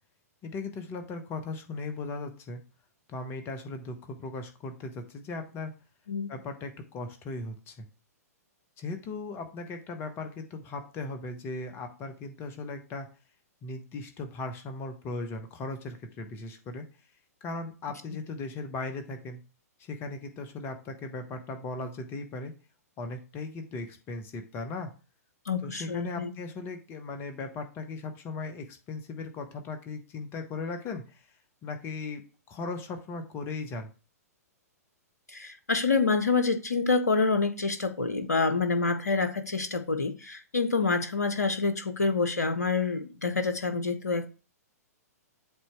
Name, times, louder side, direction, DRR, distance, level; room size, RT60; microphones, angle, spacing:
voice 1, 0.4-2.6 3.1-5.7 6.3-7.9 8.8-13.1 13.6-16.8 17.4-19.4 19.8-22.5 23.0-24.9 25.6-31.2 31.6-32.2 32.5-33.9, left 3 dB, 25° left, 1.1 m, -37 dB
voice 2, 25.5-26.3 35.3-44.3, left 4 dB, 80° left, 0.7 m, -27 dB
7.9 x 3.0 x 4.5 m
figure-of-eight pair, 110°, 9 cm